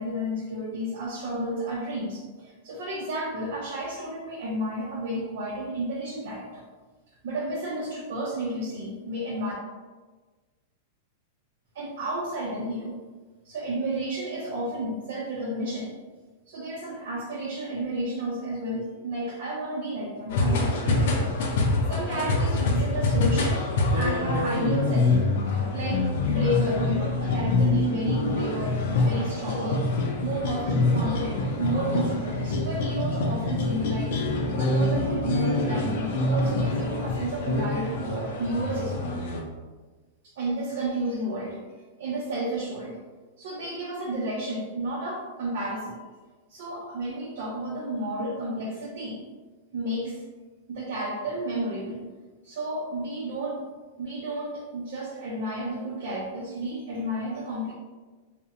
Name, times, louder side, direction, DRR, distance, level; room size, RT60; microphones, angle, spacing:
voice 1, 0.0-6.6 7.2-9.5 11.7-12.9 13.4-15.9 16.5-23.7 23.9-25.2 25.7-29.9 30.2-34.2 34.5-39.1 40.2-41.6 42.0-43.0 43.4-46.0 46.5-49.2 49.7-50.2 50.7-52.0 52.4-53.7 54.0-57.7, right 1 dB, 70° right, -3 dB, 0.5 m, -31 dB
sound 1, 20.3-39.4, left 2 dB, 65° left, 0.4 m, -25 dB
2.7 x 2.0 x 2.5 m, 1.3 s
supercardioid pair, 145°, 0 cm